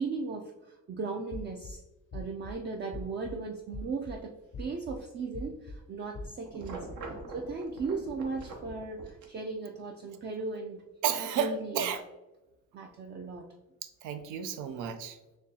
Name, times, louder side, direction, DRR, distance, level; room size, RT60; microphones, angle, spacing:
voice 1, 0.0-1.8 2.1-10.9 11.2-11.9 12.7-13.5, right 4 dB, 35° right, 2 dB, 0.4 m, -37 dB
sound 1, 1.3-1.7 2.1-2.5 2.9-3.3 3.7-4.1 4.5-5.0 5.3-5.8 6.1-6.3, left 2 dB, 40° left, 0.5 m, -41 dB
sound 2, 6.4-9.2, right 2 dB, 75° right, 0.9 m, -43 dB
voice 2, 11.0-12.0 14.0-15.2, right 8 dB, 90° right, 8 dB, 0.5 m, -32 dB
4.1 x 3.0 x 2.7 m, 1.1 s
cardioid pair, 90°, 30 cm